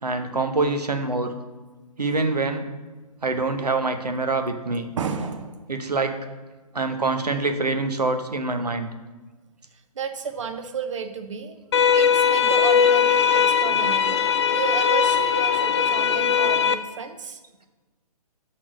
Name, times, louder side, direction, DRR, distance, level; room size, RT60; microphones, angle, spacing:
voice 1, 0.0-1.3 2.0-2.6 3.2-4.9 5.7-6.1 6.7-8.9, right 3 dB, 85° right, 7 dB, 0.9 m, -25 dB
voice 2, 5.0-5.7 9.9-11.6 11.9-17.4, right 5 dB, 50° right, 7 dB, 0.8 m, -32 dB
sound 1, 11.7-16.7, left 7 dB, 45° left, 0.4 m, -20 dB
6.2 x 4.3 x 6.2 m, 1.2 s
figure-of-eight pair, 135°, 20 cm